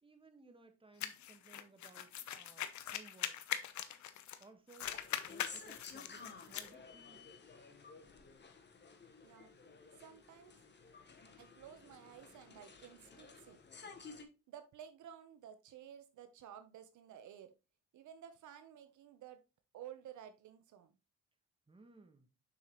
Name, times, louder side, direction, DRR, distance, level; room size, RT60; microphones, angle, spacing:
voice 1, 0.0-2.7 2.9-3.3 4.4-4.9 5.2-7.3 21.7-22.3, right 3 dB, 15° right, 1.4 m, -60 dB
sound 1, 1.0-4.4 4.7-6.7, left 10 dB, 70° left, 0.8 m, -42 dB
sound 2, 4.8-14.3, left 4 dB, 35° left, 1.3 m, -54 dB
voice 2, 10.0-10.5 11.4-13.9 14.5-17.5 17.9-19.4 19.7-20.9, right 9 dB, 75° right, 0.9 m, -54 dB
7.0 x 5.8 x 3.0 m
cardioid pair, 90°, 30 cm